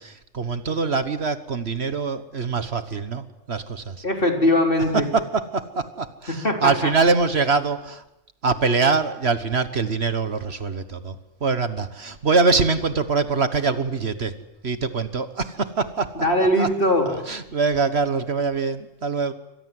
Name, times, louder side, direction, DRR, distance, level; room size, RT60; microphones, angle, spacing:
voice 1, 0.0-4.0 4.9-8.0 8.4-14.4 14.6-16.1 16.6-16.7 17.1-19.3, right 4 dB, 55° right, 11 dB, 1.6 m, -24 dB
voice 2, 4.0-5.1 6.3-6.9 16.2-17.1, left 1 dB, 45° left, 3 dB, 4.0 m, -21 dB
28.0 x 25.0 x 7.9 m, 0.87 s
omnidirectional pair, 1.3 m